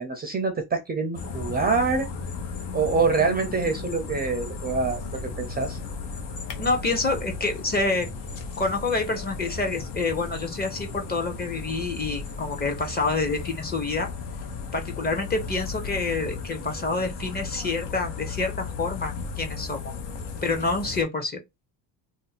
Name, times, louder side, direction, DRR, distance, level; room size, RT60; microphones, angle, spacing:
voice 1, 0.0-2.1 2.7-5.8, right 4 dB, 25° right, 0.5 m, -25 dB
sound 1, 1.1-21.0, left 5 dB, 75° left, 0.9 m, -35 dB
voice 2, 6.6-8.1 8.6-14.1 14.7-19.8 20.4-21.4, left 3 dB, 25° left, 0.7 m, -27 dB
2.6 x 2.1 x 4.0 m
cardioid pair, 130°, 42 cm